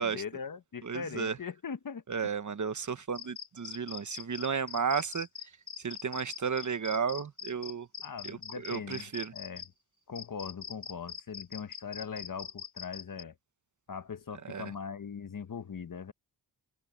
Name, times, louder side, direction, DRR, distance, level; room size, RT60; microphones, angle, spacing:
voice 1, 0.0-2.3 8.0-9.6 10.1-13.3 13.9-16.1, left 6 dB, 50° left, 1.1 m, -41 dB
voice 2, 0.8-1.4 2.1-5.3 5.8-7.9 8.2-8.4 8.6-9.3 14.4-14.7, right 6 dB, 45° right, 1.0 m, -33 dB
sound 1, 3.1-9.7 10.1-13.2, left 8 dB, 35° left, 4.0 m, -43 dB
wide cardioid pair, 100°, 41 cm